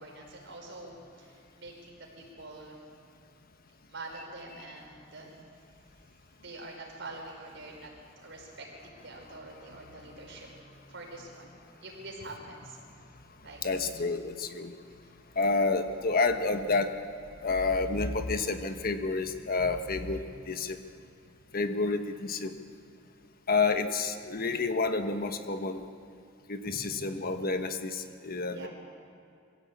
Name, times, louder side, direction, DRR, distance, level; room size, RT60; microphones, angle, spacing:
voice 1, 0.0-2.8 3.9-5.4 5.8-10.5 10.9-12.8 13.4-13.6 14.8-15.1 26.6-27.3 28.5-28.7, right 2 dB, 65° right, -1 dB, 5.1 m, -46 dB
voice 2, 9.7-10.0 13.6-14.7 15.3-17.0 17.4-20.8 21.5-22.5 23.5-25.8 26.5-28.7, left 3 dB, 50° left, 7 dB, 1.2 m, -29 dB
23.0 x 15.5 x 8.5 m, 2.4 s
head